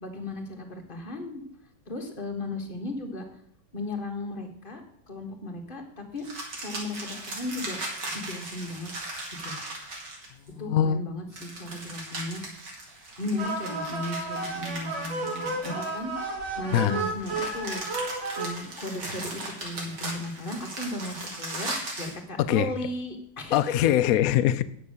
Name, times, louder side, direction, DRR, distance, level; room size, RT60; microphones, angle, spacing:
voice 1, 0.0-1.4 1.9-3.2 3.7-6.3 6.6-8.9 9.4-9.6 10.6-12.6 13.2-16.1 16.6-23.7, left 2 dB, 30° left, 3 dB, 1.5 m, -36 dB
sound 1, 6.2-10.5 11.3-16.2 17.0-22.2, right 2 dB, 65° right, 2.7 m, -38 dB
voice 2, 10.5-11.0 16.7-17.0 22.4-22.7 23.5-24.6, left 11 dB, 70° left, 13 dB, 0.9 m, -22 dB
sound 2, 13.4-18.5, right 3 dB, 90° right, 3.2 m, -32 dB
9.4 x 6.5 x 6.4 m, 0.69 s
omnidirectional pair, 2.0 m